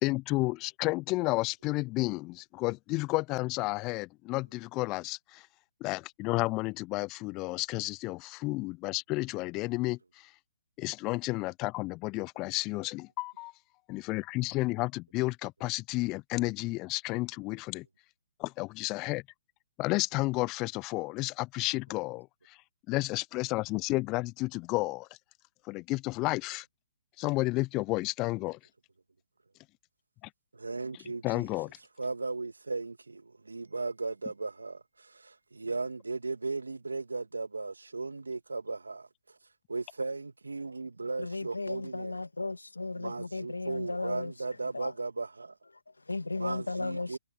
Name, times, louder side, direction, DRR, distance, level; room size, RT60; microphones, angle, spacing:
voice 1, 0.0-5.5 5.8-10.3 10.8-13.5 13.9-17.9 18.4-19.2 19.8-22.6 22.9-25.1 25.7-26.7 27.2-28.6 31.2-31.8, left 22 dB, 30° left, 0.5 m, -32 dB
voice 2, 30.5-31.5 32.0-39.1 39.7-42.2 43.0-45.5 46.4-47.2, right 3 dB, 80° right, 2.1 m, -36 dB
voice 3, 41.2-44.9 45.9-47.2, left 3 dB, 85° left, 2.2 m, -35 dB
open air
figure-of-eight pair, 125°, 0 cm